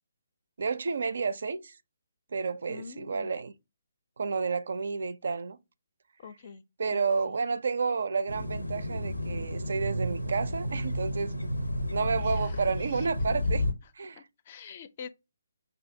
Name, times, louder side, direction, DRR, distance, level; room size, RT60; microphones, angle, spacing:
voice 1, 0.6-1.8 2.3-3.5 4.2-5.6 6.8-11.6 11.9-13.6 13.9-14.2, right 5 dB, 60° right, 0.4 m, -31 dB
voice 2, 2.7-3.3 6.2-6.6 6.9-7.4 12.2-12.6 12.9-13.1 14.2-15.1, left 6 dB, 40° left, 0.4 m, -46 dB
sound 1, 8.3-13.7, left 1 dB, 90° left, 0.6 m, -31 dB
5.5 x 2.6 x 2.6 m
figure-of-eight pair, 140°, 0 cm